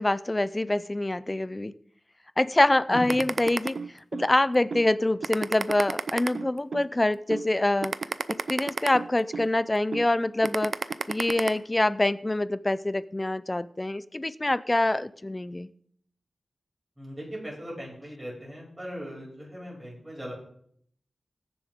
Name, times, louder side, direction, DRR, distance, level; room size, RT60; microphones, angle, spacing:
voice 1, 0.0-1.7 2.4-7.9 8.3-10.7 11.1-15.7, left 1 dB, 25° left, 16 dB, 0.5 m, -25 dB
sound 1, 3.1-4.3 4.7-4.9 5.2-6.9 7.3-7.5 7.8-9.5 9.9-10.1 10.4-11.5, right 5 dB, 85° right, 0.5 m, -30 dB
voice 2, 17.0-20.3, equal, 20° right, -4 dB, 6.3 m, -39 dB
20.5 x 7.0 x 3.6 m, 0.65 s
wide cardioid pair, 75°, 0 cm